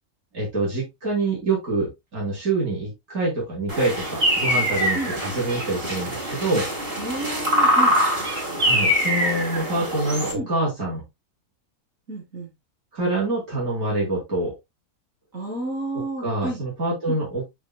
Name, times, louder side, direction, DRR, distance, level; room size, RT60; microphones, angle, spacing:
voice 1, 0.3-6.7 8.6-11.0 12.9-14.5 15.9-17.4, right 2 dB, 75° right, 4.3 m, -26 dB
sound 1, 3.7-10.3, equal, 40° right, 3.4 m, -23 dB
voice 2, 7.0-8.0 10.3-10.5 12.1-12.5 15.3-16.6 17.1-17.2, right 2 dB, 60° right, 4.4 m, -31 dB
11.5 x 4.9 x 2.3 m
omnidirectional pair, 1.5 m